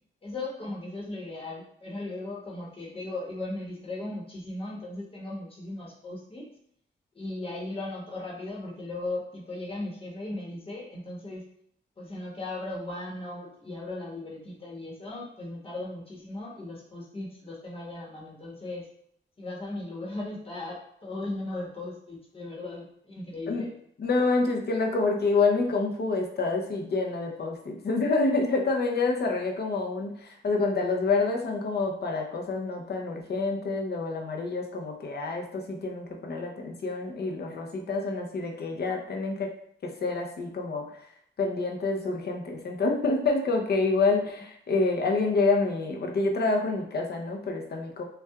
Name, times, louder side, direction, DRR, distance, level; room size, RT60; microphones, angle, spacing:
voice 1, 0.2-6.5 7.1-11.4 12.0-18.9 19.4-23.7, left 2 dB, 30° left, -4 dB, 1.0 m, -37 dB
voice 2, 24.0-39.5 39.8-41.1 41.4-48.0, left 3 dB, 55° left, 2 dB, 0.6 m, -27 dB
5.5 x 2.3 x 2.4 m, 0.70 s
wide cardioid pair, 150°, 20 cm